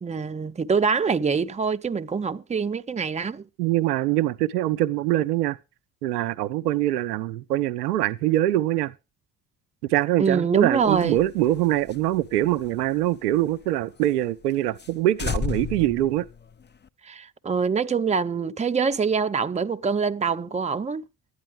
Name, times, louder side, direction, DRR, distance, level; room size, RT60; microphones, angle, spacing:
voice 1, 0.0-3.4 10.2-11.2 17.0-21.0, right 5 dB, 15° right, 0.7 m, -25 dB
voice 2, 3.6-5.6 6.0-8.9 9.9-16.3, right 14 dB, 75° right, 0.6 m, -23 dB
sound 1, 10.8-13.7 14.0-14.1 14.4-14.5 14.8-14.9 15.2-16.9, left 5 dB, 20° left, 0.9 m, -34 dB
12.5 x 9.6 x 5.0 m
figure-of-eight pair, 45°, 47 cm